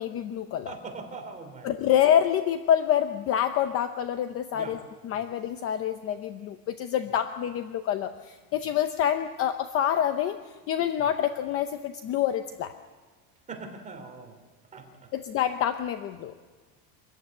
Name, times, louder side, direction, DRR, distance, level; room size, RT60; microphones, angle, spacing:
voice 1, 0.0-0.7 1.6-10.4 10.7-12.7 15.1-16.3, left 10 dB, 30° left, 8 dB, 0.7 m, -27 dB
voice 2, 0.7-1.9 4.5-4.8 5.1-5.3 11.0-11.1 13.5-14.4 14.7-15.1, right 4 dB, 15° right, 4 dB, 3.0 m, -42 dB
25.0 x 14.5 x 9.5 m, 1.4 s
cardioid pair, 180°, 47 cm